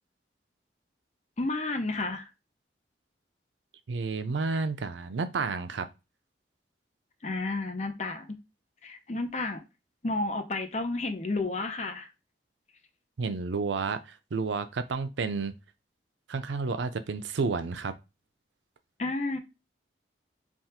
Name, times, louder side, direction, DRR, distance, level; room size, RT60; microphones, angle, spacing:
voice 1, 1.4-2.3 7.2-8.3 8.8-9.6 10.0-12.1 19.0-19.4, left 2 dB, 40° left, 0.7 m, -31 dB
voice 2, 3.9-5.9 13.2-14.0 14.3-15.6 16.3-18.0, right 4 dB, 85° right, 0.5 m, -30 dB
3.5 x 2.4 x 4.2 m
head